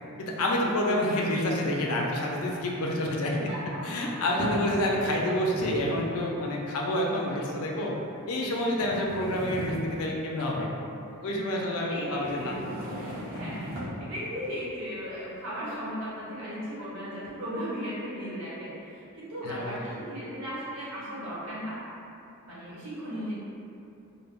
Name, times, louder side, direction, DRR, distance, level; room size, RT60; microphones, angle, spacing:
voice 1, 0.2-3.5 3.8-8.0 8.3-10.7 11.2-12.6 13.3-13.4 19.4-20.0, left 1 dB, 80° left, -1 dB, 0.4 m, -28 dB
sound 1, 1.4-1.5 2.9-3.5 4.4-5.2 5.5-6.0 6.8-6.9 7.7-7.8 8.8-10.2 12.1-14.0, equal, 45° right, 0.5 m, -36 dB
voice 2, 3.3-4.2 5.1-5.2 8.9-9.0 11.7-12.6 12.9-21.8 22.4-23.3, equal, 75° right, -9 dB, 0.9 m, -37 dB
2.1 x 2.0 x 3.5 m, 2.7 s
head